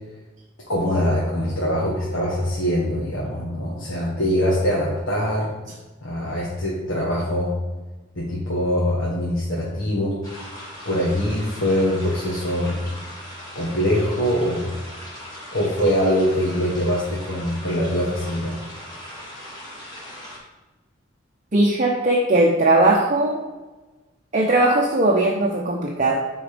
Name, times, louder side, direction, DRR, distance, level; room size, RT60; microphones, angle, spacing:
voice 1, 0.7-5.5 6.0-7.5 8.1-10.2 10.8-12.8 13.5-14.7 15.5-18.6, equal, 85° left, -6 dB, 1.5 m, -23 dB
sound 1, 10.2-20.4, equal, 20° left, 2.1 m, -39 dB
voice 2, 21.5-23.4 24.3-26.2, right 2 dB, 40° right, -1 dB, 0.7 m, -19 dB
8.5 x 4.0 x 5.1 m, 1.2 s
head